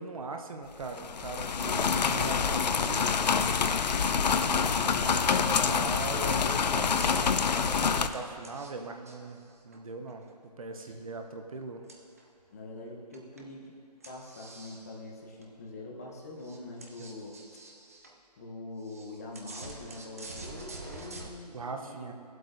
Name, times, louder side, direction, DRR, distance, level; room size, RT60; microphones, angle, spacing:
voice 1, 0.0-3.2 4.7-10.3 10.6-11.8 21.5-22.1, right 3 dB, 55° right, 5 dB, 0.8 m, -40 dB
sound 1, 0.8-8.1, left 6 dB, 85° left, 0.5 m, -26 dB
voice 2, 5.1-5.6 10.8-10.9 12.5-13.7 14.1-17.4 18.3-22.1, left 2 dB, 25° left, -2 dB, 0.8 m, -44 dB
sound 2, 6.8-8.7 9.1-10.3 11.9-12.4 13.1-13.5 14.0-14.9 15.4-15.5 16.0-16.1 16.4-18.1 18.8-21.3, right 3 dB, 20° right, 0.4 m, -47 dB
15.0 x 7.7 x 2.6 m, 2.3 s
hypercardioid pair, 170°, 21 cm